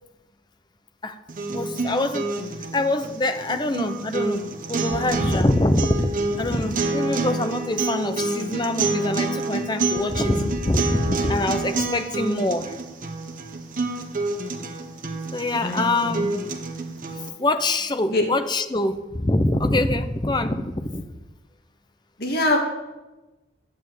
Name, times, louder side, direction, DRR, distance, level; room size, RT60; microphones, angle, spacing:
sound 1, 1.3-17.3, right 3 dB, 45° right, 1.2 m, -28 dB
voice 1, 1.5-2.3 2.7-4.4 4.7-12.7 15.3-16.3 17.4-21.0, left 2 dB, 20° left, 9 dB, 0.8 m, -24 dB
voice 2, 22.2-22.6, left 1 dB, 55° left, 1 dB, 2.2 m, -23 dB
11.5 x 9.1 x 7.8 m, 1.1 s
head